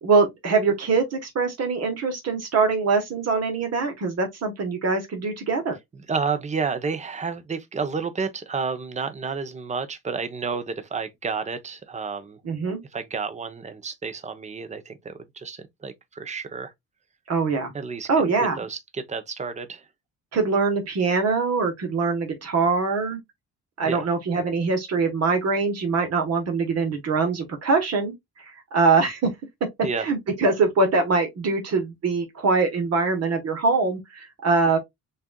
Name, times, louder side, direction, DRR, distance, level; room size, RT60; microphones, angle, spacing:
voice 1, 0.0-5.8 12.4-12.8 17.3-17.7 18.1-18.6 20.3-23.2 23.8-28.1 28.7-29.3 29.6-29.7 30.0-34.8, right 4 dB, 55° right, 1.2 m, -23 dB
voice 2, 6.1-12.4 12.9-16.7 17.7-18.1 18.6-19.8 23.8-24.1 29.8-30.1, right 5 dB, 25° right, 0.7 m, -30 dB
6.6 x 2.5 x 2.2 m
cardioid pair, 90°, 30 cm